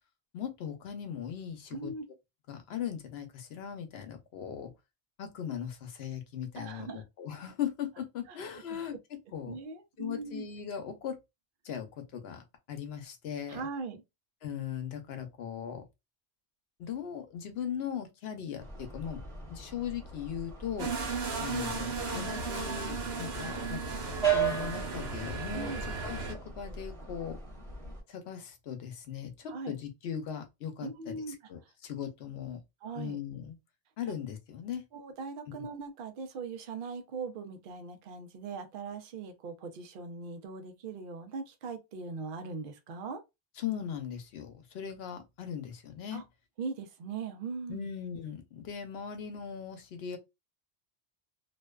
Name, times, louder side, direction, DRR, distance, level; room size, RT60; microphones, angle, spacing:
voice 1, 0.3-1.9 2.5-4.7 5.2-8.9 9.3-9.6 10.0-11.1 11.6-11.9 12.1-13.7 14.4-15.8 16.8-19.2 19.5-20.9 21.4-23.8 24.3-25.7 26.0-27.4 28.1-32.6 33.0-33.6 34.0-34.8 43.6-46.2 47.7-50.2, left 8 dB, 85° left, 0.9 m, -39 dB
voice 2, 1.7-2.0 6.6-7.0 8.3-8.4 8.7-8.8 9.5-10.5 13.5-14.0 25.5-25.8 29.5-29.8 30.8-31.4 31.6-31.7 32.8-33.2 34.9-43.2 46.1-46.2 46.6-47.9, right 4 dB, 65° right, 0.7 m, -40 dB
sound 1, 18.6-28.0, right 7 dB, 30° right, 1.2 m, -37 dB
sound 2, 20.8-26.3, right 4 dB, 85° right, 1.1 m, -35 dB
2.5 x 2.2 x 2.2 m
omnidirectional pair, 1.0 m